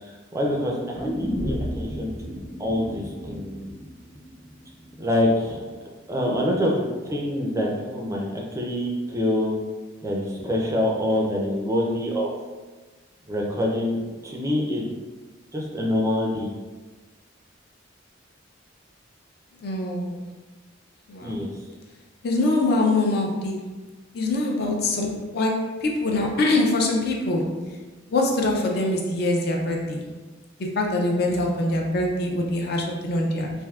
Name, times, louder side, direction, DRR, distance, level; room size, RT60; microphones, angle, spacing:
voice 1, 0.0-3.7 5.0-5.6 6.1-9.5 10.0-12.3 13.3-14.9 15.5-16.5 21.2-21.5, left 1 dB, 15° right, -1 dB, 0.4 m, -26 dB
sound 1, 0.9-5.0 5.3-5.4, equal, 20° left, 0.8 m, -32 dB
voice 2, 19.6-20.2 21.1-21.3 22.2-23.7 24.1-27.6 28.1-30.0 30.7-33.5, left 2 dB, 55° left, 0 dB, 0.4 m, -24 dB
3.4 x 2.6 x 2.3 m, 1.3 s
head